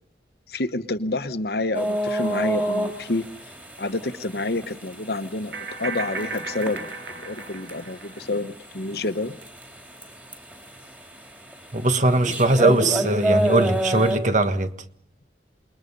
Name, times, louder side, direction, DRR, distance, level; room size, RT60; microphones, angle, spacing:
voice 1, 0.5-3.2 3.8-5.5 5.8-6.9 7.1-9.4, left 2 dB, 60° left, 1.1 m, -28 dB
sound 1, 1.7-14.2, right 1 dB, 10° right, 3.6 m, -30 dB
sound 2, 3.5-3.6 5.5-8.4, right 3 dB, 70° right, 7.3 m, -35 dB
voice 2, 11.7-14.7, right 2 dB, 45° right, 1.5 m, -20 dB
27.0 x 22.0 x 5.5 m
head